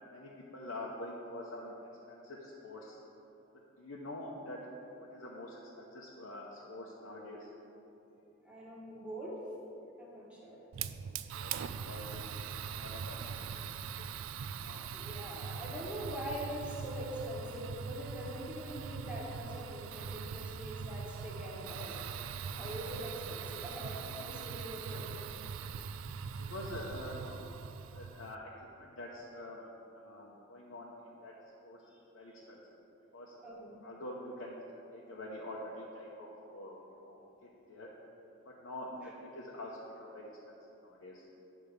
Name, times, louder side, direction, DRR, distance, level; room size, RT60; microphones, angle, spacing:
voice 1, 0.1-1.7 2.1-3.0 3.8-7.5 11.3-14.1 14.5-14.9 26.4-27.6 27.9-29.6 29.9-31.4 31.6-31.8 32.1-32.6 33.1-33.4 33.8-37.9 38.4-40.3 40.8-41.2, left 1 dB, 85° left, -4 dB, 0.8 m, -46 dB
voice 2, 8.4-9.4 10.0-10.6 14.9-22.0 22.4-25.3 31.9-32.0 33.4-33.8 38.9-39.1, equal, 5° right, -5 dB, 1.3 m, -43 dB
Fire, 10.7-28.3, right 6 dB, 75° right, 0.3 m, -42 dB
9.6 x 3.5 x 6.5 m, 2.9 s
head